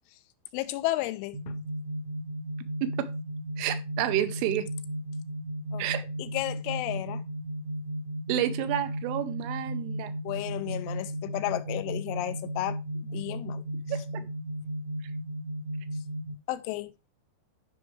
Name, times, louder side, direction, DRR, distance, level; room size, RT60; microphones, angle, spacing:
voice 1, 0.5-1.6 5.7-5.8 6.2-7.2 10.3-12.8 13.1-13.6 16.5-16.9, left 16 dB, 85° left, 2.9 m, -32 dB
sound 1, 1.3-16.3, equal, 50° right, 1.1 m, -35 dB
voice 2, 3.6-4.7 5.8-6.0 8.3-10.1 13.9-14.2, right 11 dB, 80° right, 3.3 m, -30 dB
13.5 x 5.6 x 3.2 m
omnidirectional pair, 5.7 m